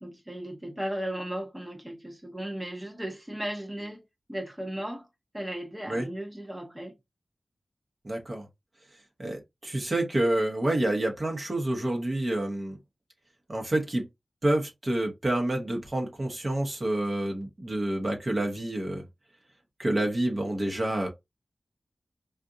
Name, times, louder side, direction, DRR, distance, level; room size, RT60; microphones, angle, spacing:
voice 1, 0.0-4.0 4.3-5.1 5.3-6.9, right 1 dB, 15° right, 0.8 m, -36 dB
voice 2, 8.0-8.5 9.2-12.8 13.5-14.1 14.4-19.0 19.8-21.1, right 1 dB, 40° right, 1.0 m, -28 dB
3.6 x 2.5 x 2.6 m
wide cardioid pair, 75°, 0 cm